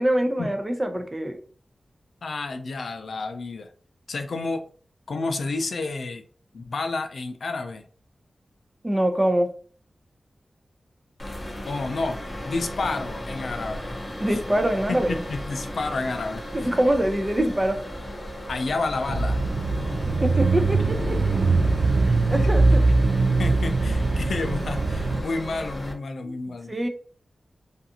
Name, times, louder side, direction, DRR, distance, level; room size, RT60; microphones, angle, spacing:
voice 1, 0.0-1.4 8.8-9.5 14.2-15.2 16.5-17.8 20.2-21.2 22.0-22.8 26.2-26.3 26.7-26.9, right 1 dB, 25° right, 6 dB, 0.5 m, -24 dB
voice 2, 2.2-3.7 4.1-4.6 5.1-6.2 6.5-7.9 11.7-12.2 12.5-14.0 14.3-14.4 14.9-16.8 18.5-19.4 19.9-20.0 22.3-22.5 23.4-26.7, left 3 dB, 80° left, 6 dB, 0.4 m, -30 dB
sound 1, 11.2-25.9, equal, 25° left, 0.6 m, -35 dB
Bicycle / Mechanisms, 19.1-25.2, right 3 dB, 80° right, 0.3 m, -22 dB
2.5 x 2.4 x 2.7 m, 0.43 s
cardioid pair, 55°, 0 cm